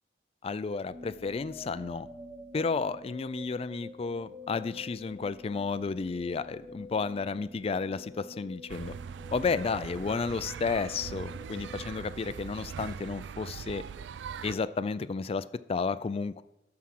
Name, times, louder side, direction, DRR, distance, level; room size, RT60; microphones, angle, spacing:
voice 1, 0.4-2.1 2.5-9.0 9.3-13.8 14.4-16.4, left 4 dB, 35° left, 14 dB, 0.3 m, -32 dB
sound 1, 0.9-12.9, left 1 dB, 10° right, 0.9 m, -48 dB
sound 2, 8.7-14.6, right 7 dB, 75° right, 0.3 m, -41 dB
12.5 x 4.8 x 6.0 m, 0.92 s
head